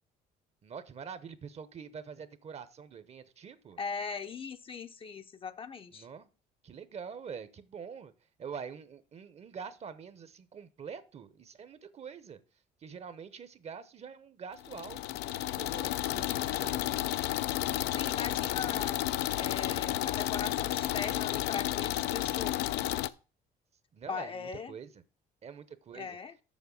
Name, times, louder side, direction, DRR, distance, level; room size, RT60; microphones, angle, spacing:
voice 1, 0.6-3.8 5.9-6.3 6.6-8.1 8.4-12.4 12.8-17.2 23.9-24.9 25.4-26.2, right 6 dB, 40° right, 0.8 m, -45 dB
voice 2, 3.8-6.1 17.9-19.0 19.3-22.7 24.1-24.7 25.9-26.3, left 5 dB, 30° left, 0.6 m, -39 dB
sound 1, 14.6-23.1, left 14 dB, 85° left, 0.4 m, -32 dB
7.3 x 6.3 x 5.2 m
cardioid pair, 110°, 17 cm